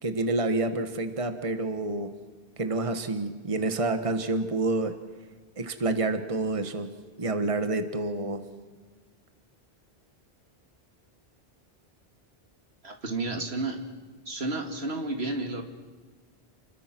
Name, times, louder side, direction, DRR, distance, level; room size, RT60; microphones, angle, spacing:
voice 1, 0.0-2.1 2.6-4.9 5.6-6.9 7.2-8.4, right 2 dB, 30° right, 8 dB, 1.4 m, -28 dB
voice 2, 12.8-13.8 14.3-15.6, right 2 dB, 80° right, 4 dB, 2.6 m, -31 dB
29.0 x 22.0 x 6.1 m, 1.5 s
omnidirectional pair, 1.1 m